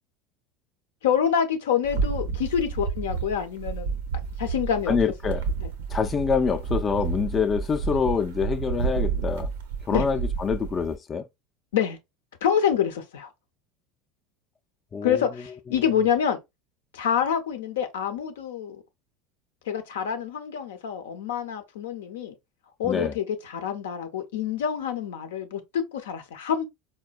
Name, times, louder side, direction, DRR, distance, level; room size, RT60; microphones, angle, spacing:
voice 1, 1.0-4.0 4.4-5.0 5.6-5.7 9.9-10.0 11.7-12.0 12.4-13.3 15.0-16.4 16.9-18.8 19.7-22.3 22.8-26.7, left 8 dB, 85° left, 0.5 m, -26 dB
sound 1, 1.8-11.0, right 6 dB, 85° right, 0.6 m, -30 dB
voice 2, 4.9-5.4 5.9-9.5 9.9-11.2 14.9-15.2 22.8-23.1, left 6 dB, 30° left, 0.3 m, -26 dB
4.1 x 2.1 x 2.3 m
hypercardioid pair, 90°, 0 cm